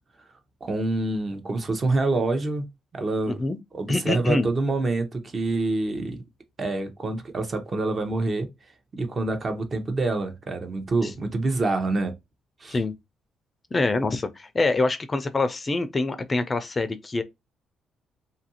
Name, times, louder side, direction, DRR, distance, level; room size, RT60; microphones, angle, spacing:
voice 1, 0.6-2.7 2.9-3.4 3.7-6.2 6.6-8.5 8.9-12.2 12.6-12.8, right 2 dB, 40° right, 0.7 m, -26 dB
voice 2, 3.3-3.6 3.9-4.5 11.0-11.1 12.7-12.9 13.7-17.2, left 2 dB, 30° left, 0.4 m, -25 dB
2.7 x 2.5 x 2.7 m
cardioid pair, 90°, 0 cm